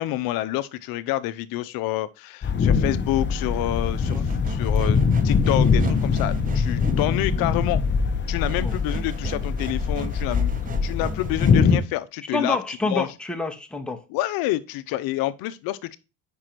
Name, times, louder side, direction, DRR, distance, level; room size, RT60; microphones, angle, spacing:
voice 1, 0.0-7.8 8.3-10.5 10.8-12.6 12.9-13.1 14.1-16.0, left 15 dB, 65° left, 0.7 m, -28 dB
sound 1, 2.4-11.8, left 5 dB, 30° left, 0.8 m, -22 dB
sound 2, 2.9-11.8, right 6 dB, 20° right, 0.6 m, -37 dB
voice 2, 12.3-14.0, left 3 dB, ahead, 1.0 m, -28 dB
5.2 x 4.8 x 4.4 m
supercardioid pair, 85°, 37 cm